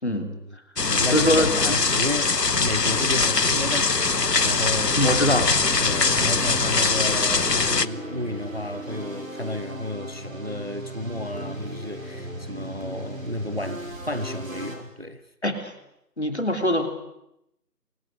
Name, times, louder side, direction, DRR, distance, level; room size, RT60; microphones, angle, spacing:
voice 1, 0.0-5.0 5.8-15.2, left 1 dB, 35° right, 1.3 m, -32 dB
sound 1, 0.8-7.9, left 4 dB, 75° left, 1.1 m, -22 dB
voice 2, 1.1-1.8 5.0-5.5 15.4-15.7 16.2-16.9, left 1 dB, 40° left, 3.2 m, -22 dB
sound 2, 3.9-14.8, right 1 dB, 55° right, 5.5 m, -36 dB
29.5 x 25.0 x 6.6 m
figure-of-eight pair, 180°, 49 cm